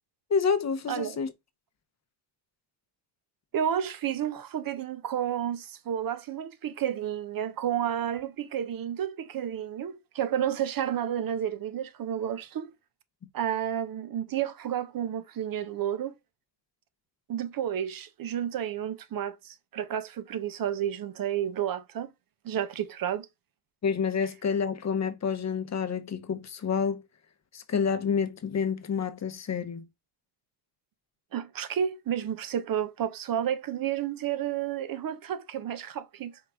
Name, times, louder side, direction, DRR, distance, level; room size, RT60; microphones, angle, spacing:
voice 1, 0.3-1.3 23.8-27.0 27.5-29.9, left 6 dB, 40° left, 0.7 m, -28 dB
voice 2, 3.5-12.7 13.3-16.1 17.3-22.1 22.4-23.3 31.3-36.4, right 10 dB, 55° right, 0.6 m, -31 dB
4.6 x 2.3 x 3.3 m
cardioid pair, 65°, 42 cm